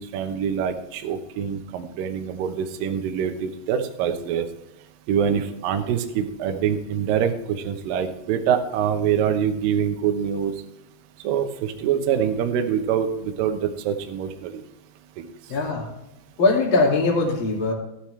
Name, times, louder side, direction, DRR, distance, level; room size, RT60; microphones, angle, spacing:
voice 1, 0.0-4.5 5.1-10.5 11.2-14.6 15.2-15.3, right 8 dB, 70° right, 6 dB, 2.3 m, -25 dB
voice 2, 15.5-15.9 16.4-17.7, left 3 dB, 35° left, -2 dB, 2.4 m, -21 dB
15.0 x 9.0 x 3.3 m, 0.91 s
omnidirectional pair, 5.1 m